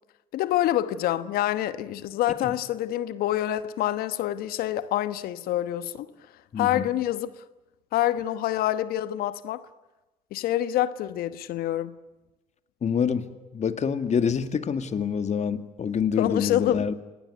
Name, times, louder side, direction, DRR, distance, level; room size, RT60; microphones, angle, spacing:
voice 1, 0.3-6.1 6.6-7.3 7.9-9.7 10.3-11.9 16.2-16.9, left 13 dB, 65° left, 1.1 m, -26 dB
voice 2, 6.5-6.9 12.8-13.3 13.5-16.9, left 7 dB, 45° left, 2.1 m, -26 dB
28.0 x 18.5 x 9.5 m
hypercardioid pair, 55°, 16 cm